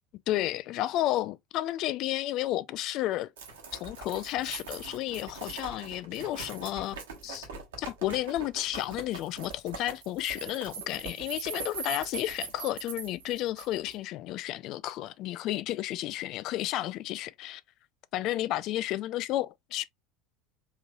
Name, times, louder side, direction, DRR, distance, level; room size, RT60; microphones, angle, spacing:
voice 1, 0.3-3.3 3.8-7.0 7.2-7.5 7.8-17.6 18.1-19.8, left 14 dB, 50° left, 0.4 m, -32 dB
sound 1, 3.4-13.9, right 5 dB, 70° right, 1.3 m, -41 dB
4.7 x 3.2 x 2.3 m
figure-of-eight pair, 75°, 0 cm